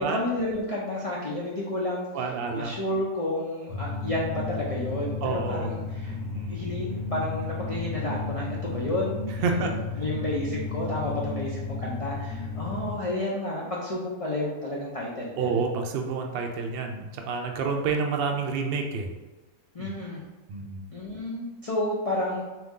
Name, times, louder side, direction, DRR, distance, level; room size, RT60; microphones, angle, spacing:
voice 1, 0.0-6.2 6.5-15.7 19.7-20.2 20.9-22.5, left 1 dB, 50° left, -5 dB, 0.4 m, -31 dB
voice 2, 2.1-2.7 5.2-5.7 6.1-6.6 9.4-9.7 15.4-19.1 19.8-19.9 20.5-20.8, right 4 dB, 65° right, 3 dB, 0.6 m, -29 dB
sound 1, 3.7-13.0, left 3 dB, 80° left, 1.5 m, -33 dB
4.0 x 3.0 x 3.6 m, 1.1 s
omnidirectional pair, 1.6 m